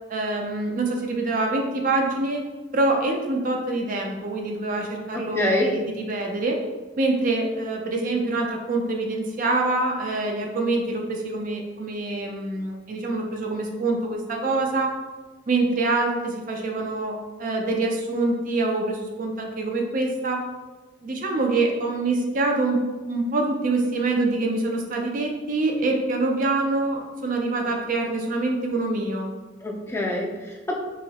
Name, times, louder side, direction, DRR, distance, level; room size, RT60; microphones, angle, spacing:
voice 1, 0.1-2.4 2.7-6.6 7.0-14.9 15.5-20.4 21.0-22.8 23.1-29.3, right 2 dB, 45° right, 1 dB, 0.4 m, -25 dB
voice 2, 5.1-5.7 29.6-30.8, left 1 dB, 15° left, -2 dB, 0.4 m, -26 dB
3.0 x 2.7 x 2.8 m, 1.2 s
head